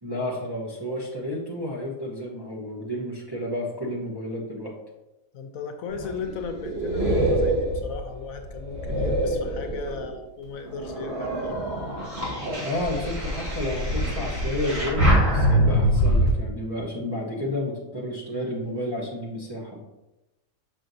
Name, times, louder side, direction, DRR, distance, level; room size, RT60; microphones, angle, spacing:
voice 1, 0.0-4.7 12.6-19.8, left 1 dB, 20° right, -5 dB, 0.8 m, -31 dB
voice 2, 5.3-11.7, left 5 dB, 75° left, 6 dB, 1.0 m, -36 dB
sound 1, 5.9-10.1 10.6-16.3, equal, 45° right, 1.9 m, -24 dB
6.1 x 6.0 x 2.6 m, 0.97 s
omnidirectional pair, 1.5 m